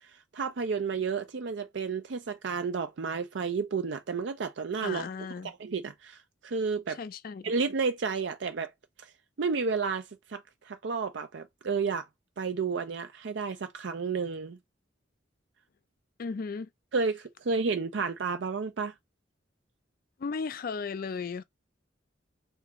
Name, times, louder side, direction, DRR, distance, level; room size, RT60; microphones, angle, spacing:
voice 1, 0.3-5.1 5.6-7.0 7.4-8.7 9.0-9.1 9.4-10.0 10.3-12.0 12.4-14.6 16.9-18.9, right 5 dB, 65° right, 0.5 m, -31 dB
voice 2, 4.8-5.5 6.9-7.5 16.2-16.7 20.2-21.4, left 5 dB, 50° left, 0.4 m, -35 dB
3.4 x 2.8 x 3.5 m
head